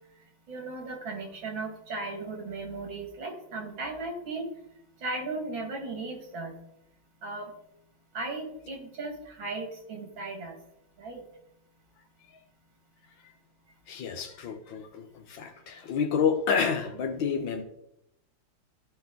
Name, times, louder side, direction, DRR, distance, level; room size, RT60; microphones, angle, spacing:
voice 1, 0.5-4.5 5.0-6.5 7.2-7.5 8.1-10.6 11.0-11.2, right 3 dB, 85° right, 2 dB, 2.9 m, -36 dB
voice 2, 13.9-17.6, left 6 dB, 75° left, 6 dB, 1.9 m, -29 dB
15.0 x 5.4 x 4.0 m, 0.79 s
omnidirectional pair, 2.1 m